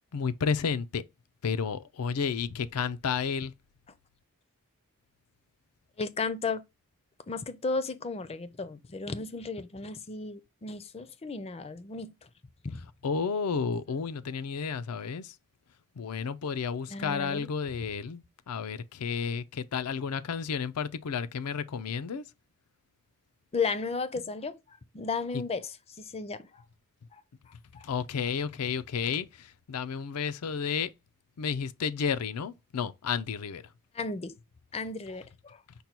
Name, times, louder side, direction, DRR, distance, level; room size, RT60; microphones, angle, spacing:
voice 1, 0.1-1.0 1.4-3.5 13.0-15.4 16.0-22.2 25.3-25.4 27.5-30.9 31.4-33.7, left 6 dB, 85° left, 0.5 m, -32 dB
voice 2, 6.0-6.6 7.3-12.1 12.6-12.8 16.9-17.5 23.5-26.6 27.7-27.9 33.9-34.3 34.7-35.6, left 4 dB, 25° left, 0.4 m, -34 dB
5.3 x 2.2 x 4.3 m
head